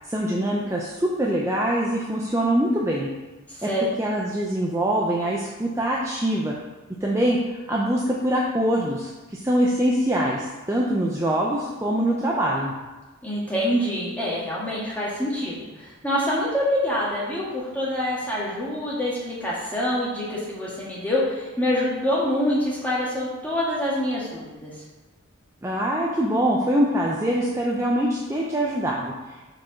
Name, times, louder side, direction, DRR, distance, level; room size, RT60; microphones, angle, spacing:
voice 1, 0.0-3.1 3.6-3.7 4.0-6.5 7.0-12.7 25.6-29.4, right 1 dB, 15° right, -4 dB, 0.5 m, -24 dB
voice 2, 13.2-24.7, equal, 5° left, -7 dB, 1.7 m, -26 dB
4.8 x 4.7 x 5.8 m, 1.2 s
head